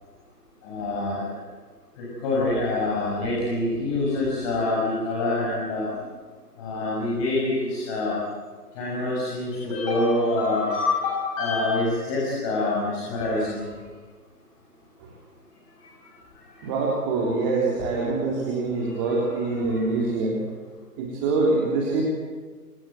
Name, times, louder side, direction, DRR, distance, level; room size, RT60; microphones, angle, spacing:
voice 1, 0.6-1.2 2.0-5.9 6.6-8.2 8.7-13.6 19.2-19.8, left 2 dB, 20° left, -6 dB, 6.6 m, -26 dB
voice 2, 16.6-20.4 21.0-22.0, right 3 dB, 20° right, -3 dB, 3.5 m, -25 dB
28.0 x 25.5 x 7.9 m, 1.4 s
figure-of-eight pair, 145°, 48 cm